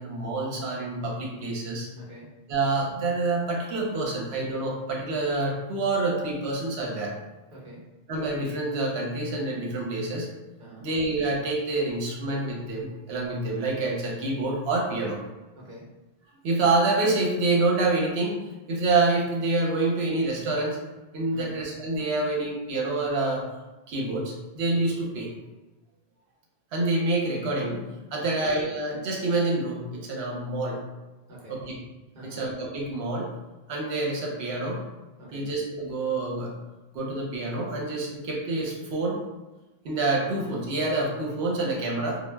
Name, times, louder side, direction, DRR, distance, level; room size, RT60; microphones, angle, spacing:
voice 1, 0.0-1.9 2.5-7.1 8.1-10.3 10.8-15.2 16.4-18.4 18.7-20.8 21.1-23.5 23.9-25.3 26.7-27.9 28.1-30.8 31.5-31.8 32.2-33.3 33.7-34.8 35.3-36.5 36.9-39.2 39.8-42.2, right 2 dB, 80° right, -2 dB, 0.9 m, -27 dB
voice 2, 1.9-2.4 7.5-7.9 10.6-10.9 15.0-15.1 15.6-16.0 21.3-21.6 28.2-28.5 31.3-31.7 32.1-32.5 35.2-35.5, right 1 dB, 50° right, -5 dB, 0.9 m, -45 dB
2.1 x 2.0 x 3.2 m, 1.1 s
omnidirectional pair, 1.1 m